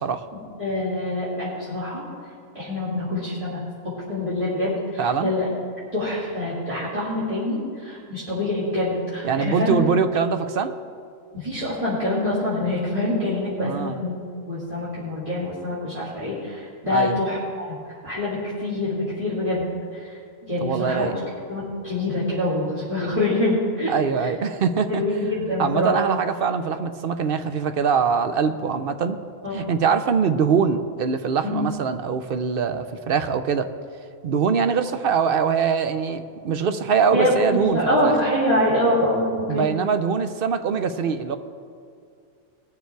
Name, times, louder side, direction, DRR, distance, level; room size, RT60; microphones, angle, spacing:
voice 1, 0.3-2.0 2.5-3.6 3.8-5.5 5.9-9.7 11.3-14.1 14.5-17.7 18.0-20.2 20.4-21.1 21.5-24.3 24.9-26.0 29.4-29.7 31.4-31.7 37.1-39.7, left 1 dB, 25° right, -10 dB, 2.8 m, -25 dB
voice 2, 5.0-5.3 9.2-10.7 13.6-14.0 16.9-17.2 20.6-21.1 23.9-25.0 25.6-29.2 29.5-33.7 34.2-38.1 39.5-41.4, right 6 dB, 55° right, 9 dB, 0.7 m, -23 dB
20.0 x 6.9 x 4.6 m, 2.3 s
omnidirectional pair, 1.4 m